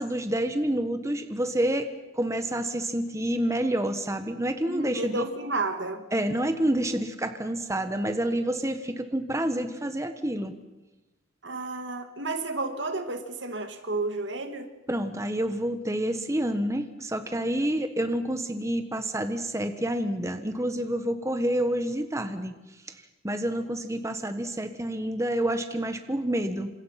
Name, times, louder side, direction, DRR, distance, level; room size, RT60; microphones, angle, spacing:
voice 1, 0.0-1.9 2.1-5.3 6.1-10.5 14.9-22.5 23.2-26.7, right 1 dB, 15° right, 8 dB, 1.3 m, -28 dB
voice 2, 4.7-6.1 11.4-14.7, right 3 dB, 70° right, 7 dB, 2.4 m, -31 dB
29.0 x 26.5 x 5.9 m, 1.0 s
head